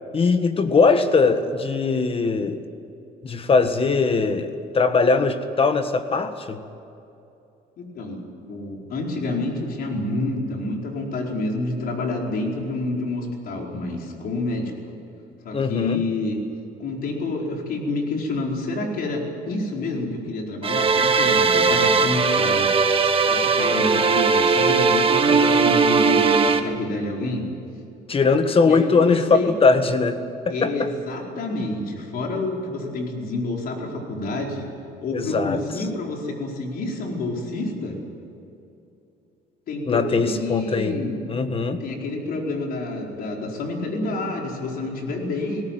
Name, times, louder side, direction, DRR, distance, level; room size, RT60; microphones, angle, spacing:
voice 1, 0.1-2.6 3.2-6.6 15.5-16.0 28.1-29.3 29.6-30.2 30.4-30.9 35.1-35.6 39.9-41.0 41.3-41.8, left 4 dB, 35° left, 9 dB, 1.6 m, -20 dB
voice 2, 7.8-8.2 8.5-14.7 15.4-16.4 16.8-22.7 23.3-27.4 28.6-29.5 30.5-34.6 35.0-38.0 39.7-41.2 41.8-45.6, left 2 dB, 60° left, 0 dB, 4.7 m, -28 dB
sound 1, 20.6-26.6, right 4 dB, 35° right, 1.6 m, -19 dB
19.5 x 18.0 x 9.3 m, 2.8 s
cardioid pair, 110°, 17 cm